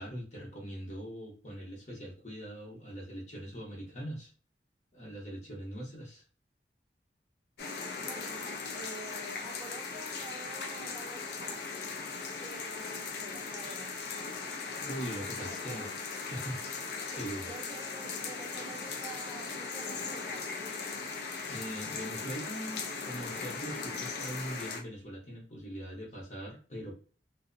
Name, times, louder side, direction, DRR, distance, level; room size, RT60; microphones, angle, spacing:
voice 1, 0.0-4.3 4.9-6.2 14.7-15.8 16.3-16.6 17.0-17.5 21.5-26.9, equal, 40° left, -2 dB, 0.9 m, -41 dB
sound 1, 7.6-24.8, left 4 dB, 60° left, 0.5 m, -38 dB
voice 2, 8.0-11.6 12.4-13.9 15.4-15.9 17.1-20.5, right 3 dB, 20° right, -2 dB, 0.5 m, -48 dB
2.6 x 2.1 x 2.5 m, 0.39 s
head